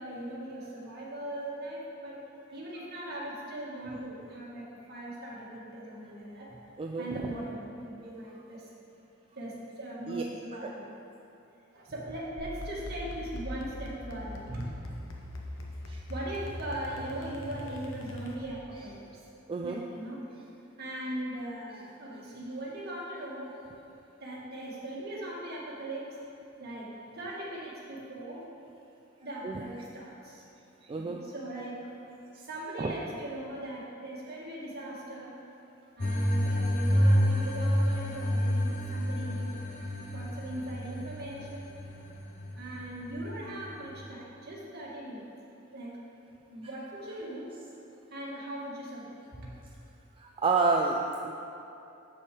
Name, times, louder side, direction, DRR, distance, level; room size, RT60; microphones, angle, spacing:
voice 1, 0.0-2.2 2.5-6.6 7.0-8.6 9.4-10.9 11.7-14.7 16.1-19.2 19.6-20.2 20.8-23.5 24.2-26.2 26.6-28.5 29.2-30.4 30.9-31.8 32.3-35.3 36.0-39.6 40.0-41.6 42.6-45.3 45.7-46.0 46.5-47.5 48.1-49.6, right 1 dB, 50° right, -5 dB, 1.8 m, -39 dB
sound 1, 12.4-18.7, left 1 dB, 75° left, 1.0 m, -41 dB
voice 2, 19.5-19.8 29.4-29.6 30.8-31.2 32.8-32.9 50.2-51.3, right 4 dB, 25° right, 1 dB, 0.3 m, -29 dB
sound 2, 36.0-44.1, equal, 35° left, 0.7 m, -29 dB
7.2 x 6.6 x 5.0 m, 2.8 s
head